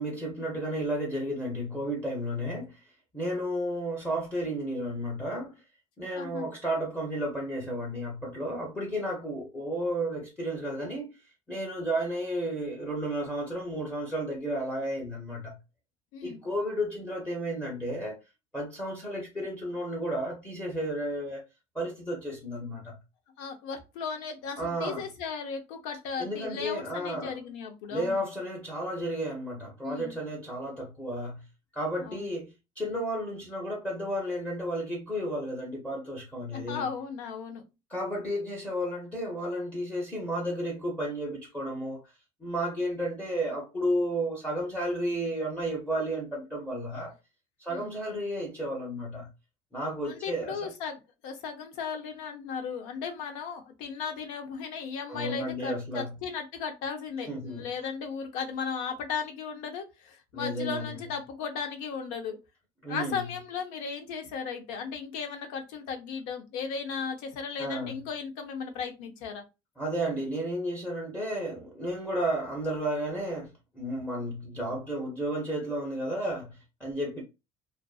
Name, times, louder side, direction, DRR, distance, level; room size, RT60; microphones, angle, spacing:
voice 1, 0.0-2.8 3.1-5.6 6.0-11.1 11.5-15.6 16.2-18.2 18.5-21.4 21.7-23.0 24.6-25.0 26.2-27.3 27.9-31.4 31.7-36.9 37.9-42.0 42.4-47.1 47.6-49.3 49.7-50.7 55.1-56.1 57.3-57.7 60.3-61.0 62.8-63.3 67.6-68.0 69.8-77.2, equal, 10° left, 0.7 m, -32 dB
voice 2, 6.1-6.5 16.1-16.4 23.4-28.2 29.8-30.1 32.0-32.2 36.5-37.6 47.7-47.9 50.1-62.4 62.9-69.4, left 6 dB, 85° left, 0.7 m, -36 dB
2.5 x 2.4 x 2.3 m
cardioid pair, 155°, 13 cm